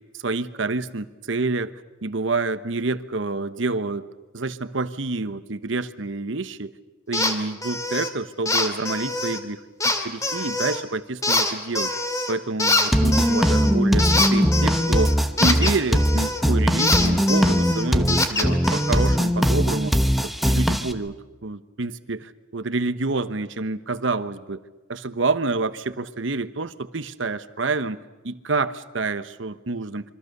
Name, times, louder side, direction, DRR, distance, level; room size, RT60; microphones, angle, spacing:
voice 1, 0.0-1.7 2.0-6.7 7.1-11.9 12.3-19.9 20.2-24.6 24.9-28.0 28.2-30.0, right 3 dB, 70° right, 12 dB, 1.1 m, -28 dB
sound 1, 7.1-7.3 7.6-8.1 8.5-9.4 9.8-10.8 11.2-12.3 12.6-16.4 16.8-19.2, left 2 dB, 15° left, 2.3 m, -24 dB
sound 2, 12.9-20.9, equal, ahead, 1.0 m, -20 dB
27.5 x 24.5 x 6.7 m, 1.2 s
head